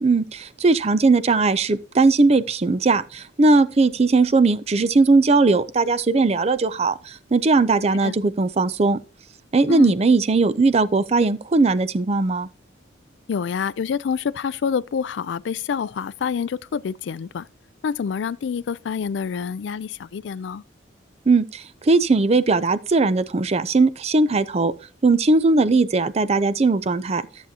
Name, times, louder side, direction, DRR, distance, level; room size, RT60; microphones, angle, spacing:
voice 1, 0.0-9.0 9.5-12.5 21.3-24.7 25.0-27.2, right 3 dB, 35° right, 0.4 m, -19 dB
voice 2, 13.3-17.5 17.8-20.6, left 6 dB, 70° left, 0.3 m, -27 dB
13.5 x 7.3 x 2.8 m
head